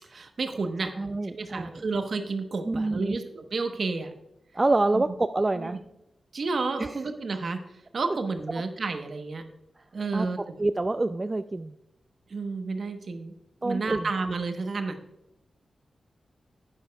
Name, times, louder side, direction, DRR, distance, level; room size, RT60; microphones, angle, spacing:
voice 1, 0.1-0.9 1.2-4.1 4.9-5.0 5.6-5.7 6.3-7.6 7.9-9.4 9.9-10.5 12.3-13.3 13.6-15.0, right 3 dB, 65° right, 7 dB, 1.0 m, -31 dB
voice 2, 0.8-1.8 2.6-3.2 4.5-5.8 6.8-7.0 10.1-10.3 10.6-11.7 13.6-14.1, right 2 dB, 35° right, 10 dB, 0.3 m, -27 dB
11.5 x 8.8 x 2.3 m, 0.85 s
supercardioid pair, 40°, 0 cm